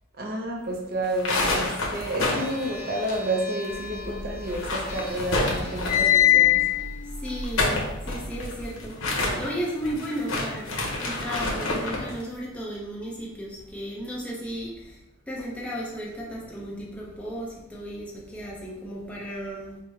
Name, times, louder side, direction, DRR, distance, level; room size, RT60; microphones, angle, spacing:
voice 1, 0.2-6.6, right 1 dB, 45° right, 0 dB, 0.6 m, -30 dB
sound 1, 1.0-3.7 3.9-4.0 4.4-6.2 7.3-12.1, left 2 dB, 80° left, 0.8 m, -29 dB
sound 2, 2.3-7.4, left 1 dB, 55° left, 1.0 m, -42 dB
sound 3, 3.9-4.9 5.2-8.6, left 13 dB, 40° left, 0.5 m, -23 dB
voice 2, 7.2-15.0 15.3-19.8, equal, 5° left, -5 dB, 0.7 m, -34 dB
4.9 x 2.2 x 3.1 m, 0.92 s
head